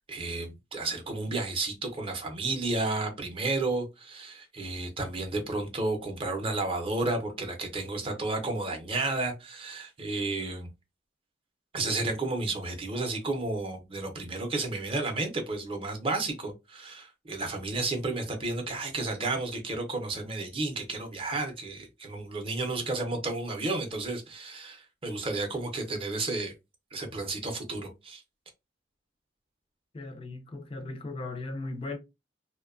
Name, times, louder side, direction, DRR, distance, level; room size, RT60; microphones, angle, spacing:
voice 1, 0.1-10.7 11.7-26.5 26.9-28.2, right 2 dB, 30° right, 0.6 m, -32 dB
voice 2, 29.9-32.0, left 2 dB, 30° left, 0.4 m, -37 dB
2.6 x 2.1 x 2.4 m
head